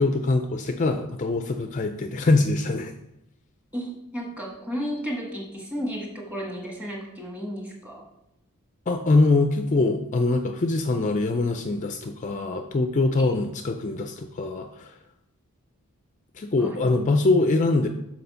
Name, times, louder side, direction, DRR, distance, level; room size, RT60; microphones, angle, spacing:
voice 1, 0.0-2.9 8.9-14.9 16.4-17.9, left 3 dB, 35° left, 6 dB, 0.4 m, -23 dB
voice 2, 3.7-8.1 13.2-13.3 16.6-16.8, equal, 5° right, -1 dB, 1.4 m, -33 dB
6.7 x 4.5 x 5.6 m, 0.83 s
head